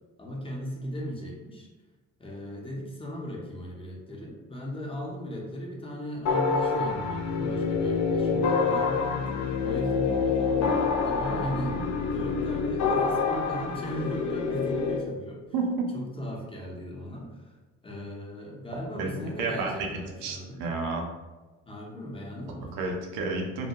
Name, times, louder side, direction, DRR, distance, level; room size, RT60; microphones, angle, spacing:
voice 1, 0.2-1.7 2.2-15.4 15.9-17.6 17.8-20.6 21.7-22.8, equal, 15° left, -2 dB, 0.8 m, -37 dB
sound 1, 6.2-15.0, left 5 dB, 50° left, 0.4 m, -27 dB
voice 2, 15.5-15.9 19.0-19.1 19.4-19.7 20.2-21.0 22.7-23.7, right 3 dB, 75° right, 1 dB, 0.6 m, -30 dB
2.2 x 2.1 x 2.8 m, 1.2 s
hypercardioid pair, 55°, 37 cm